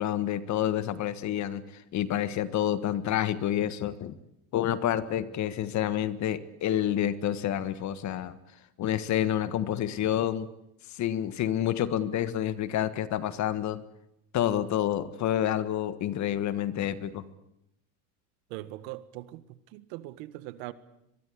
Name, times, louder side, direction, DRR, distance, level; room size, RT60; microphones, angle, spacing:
voice 1, 0.0-1.6 1.9-4.1 4.5-8.4 8.8-10.5 10.9-13.8 14.3-17.2, left 11 dB, 40° left, 1.6 m, -28 dB
voice 2, 18.5-20.7, right 16 dB, 65° right, 1.8 m, -41 dB
23.0 x 22.5 x 8.6 m
supercardioid pair, 130°, 44 cm